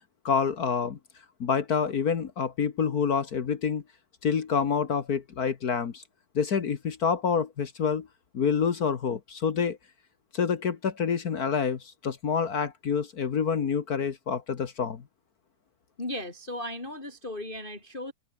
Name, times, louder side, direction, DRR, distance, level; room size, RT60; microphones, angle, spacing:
voice 1, 0.2-1.0 1.4-3.8 4.2-6.0 6.3-8.1 8.3-9.8 10.3-15.0, left 6 dB, 50° left, 1.1 m, -27 dB
voice 2, 16.0-18.1, left 1 dB, 15° left, 3.6 m, -36 dB
omnidirectional pair, 3.4 m